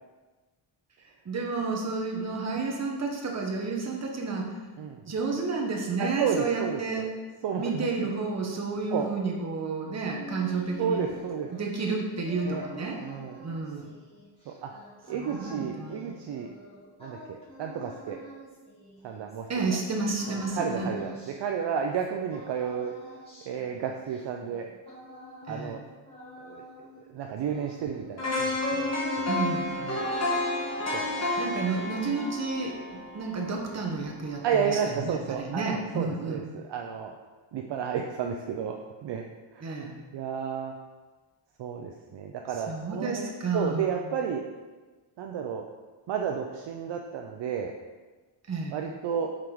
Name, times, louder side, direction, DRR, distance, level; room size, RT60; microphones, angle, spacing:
voice 1, 1.2-4.5 5.0-7.1 7.5-11.1 11.5-13.0 13.4-13.9 15.1-16.1 19.5-20.9 25.5-25.7 29.3-29.6 31.4-36.4 39.6-39.9 42.7-43.9 48.5-48.8, right 3 dB, 35° right, 0 dB, 1.2 m, -31 dB
voice 2, 6.0-7.1 7.4-8.1 8.9-9.1 10.5-11.5 12.5-12.6 13.0-13.4 14.5-14.7 15.1-16.5 17.0-18.2 19.0-19.8 20.3-22.9 23.5-24.7 25.5-25.8 26.4-26.9 27.1-29.3 29.8-30.0 30.9-31.0 34.4-37.1 37.5-39.2 39.5-40.7 41.6-44.4 45.2-45.6 46.1-47.7 48.7-49.3, right 7 dB, 60° right, 2 dB, 0.6 m, -32 dB
sound 1, 9.9-19.7 20.2-22.0 22.3-25.8 26.0-27.1 27.4-28.3, right 1 dB, 10° left, 1.8 m, -48 dB
sound 2, 28.2-34.2 34.6-34.7, left 2 dB, 30° left, 1.5 m, -31 dB
5.9 x 4.5 x 5.0 m, 1.3 s
cardioid pair, 140°, 49 cm